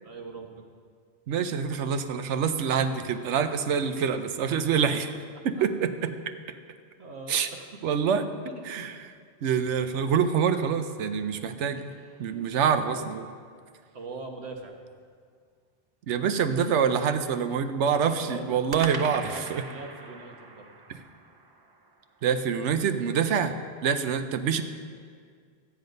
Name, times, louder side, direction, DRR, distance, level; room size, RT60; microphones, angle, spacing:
voice 1, 0.0-0.7 3.9-4.2 5.6-5.7 7.0-7.9 8.2-8.9 12.8-13.1 13.9-14.7 18.1-20.7, right 3 dB, 65° right, 3 dB, 1.5 m, -42 dB
voice 2, 1.3-5.1 5.4-6.1 7.3-7.5 7.8-8.2 8.7-8.9 9.4-11.9 12.2-13.3 16.1-19.6 22.2-23.5 23.8-24.6, right 7 dB, 85° right, 10 dB, 1.0 m, -26 dB
sound 1, 11.0-12.9 18.7-23.0, right 3 dB, 40° right, 0.3 m, -44 dB
13.0 x 9.6 x 5.3 m, 2.1 s
omnidirectional pair, 1.2 m